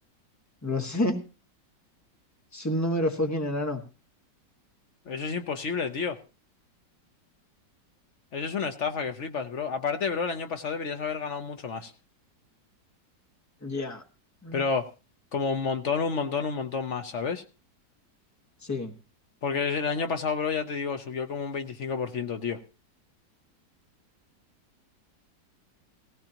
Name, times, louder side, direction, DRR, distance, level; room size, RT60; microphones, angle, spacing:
voice 1, 0.6-1.2 2.5-3.8 13.6-14.0 14.4-14.6 18.6-18.9, left 1 dB, 10° left, 4 dB, 1.3 m, -28 dB
voice 2, 5.1-6.2 8.3-11.9 14.5-14.9 15.3-17.4 19.4-22.6, left 5 dB, 50° left, 7 dB, 1.0 m, -30 dB
17.5 x 15.5 x 2.9 m, 0.32 s
omnidirectional pair, 1.9 m